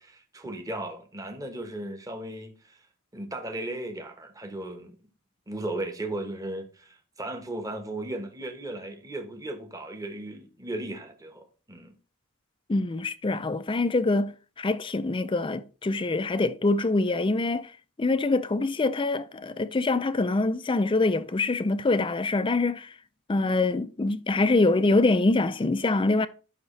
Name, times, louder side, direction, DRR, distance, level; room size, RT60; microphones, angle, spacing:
voice 1, 0.0-2.8 3.1-5.0 5.5-11.9, right 1 dB, 15° right, 1.2 m, -36 dB
voice 2, 12.7-17.7 18.0-22.9 23.3-26.3, left 2 dB, 25° left, 0.4 m, -25 dB
12.0 x 5.8 x 3.2 m
head